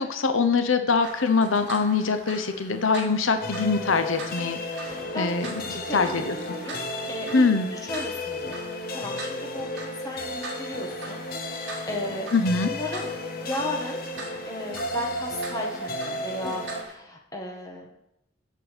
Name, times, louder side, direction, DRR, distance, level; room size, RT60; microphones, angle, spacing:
voice 1, 0.0-6.4 7.3-7.7 12.3-12.7, left 4 dB, 80° left, 8 dB, 0.9 m, -24 dB
sound 1, 1.0-16.9, right 2 dB, 60° right, 2.3 m, -43 dB
sound 2, 3.4-16.8, left 1 dB, 45° left, 1.0 m, -34 dB
voice 2, 5.7-6.8 7.1-8.6 8.9-12.3 12.7-13.1 13.3-14.0 14.5-17.9, left 1 dB, 15° left, 0 dB, 1.5 m, -35 dB
7.8 x 6.8 x 8.2 m, 0.84 s
head